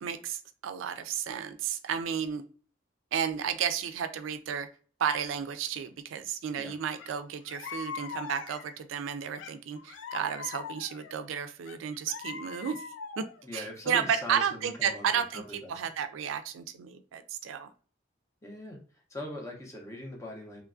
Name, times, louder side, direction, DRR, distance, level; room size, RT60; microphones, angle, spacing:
voice 1, 0.0-2.4 3.1-4.7 5.0-12.8 13.2-13.3 13.5-17.7, right 8 dB, 90° right, 10 dB, 0.3 m, -32 dB
sound 1, 7.0-7.1 7.5-8.8 9.4-11.1 11.7-13.4, left 6 dB, 75° left, 0.3 m, -41 dB
voice 2, 13.4-15.9 18.4-18.8 19.1-20.6, left 1 dB, 15° left, 0 dB, 0.7 m, -41 dB
3.0 x 2.3 x 2.4 m, 0.41 s
head